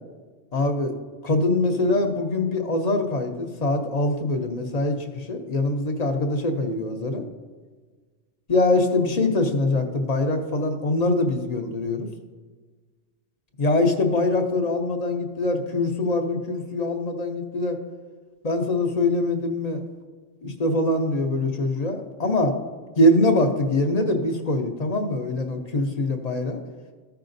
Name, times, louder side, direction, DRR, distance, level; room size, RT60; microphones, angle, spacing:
voice 1, 0.5-0.9 1.2-7.3 8.5-12.1 13.6-17.8 18.4-19.8 20.4-22.6 23.0-26.6, left 2 dB, 40° left, 5 dB, 0.8 m, -23 dB
14.0 x 5.8 x 2.6 m, 1.4 s
omnidirectional pair, 1.3 m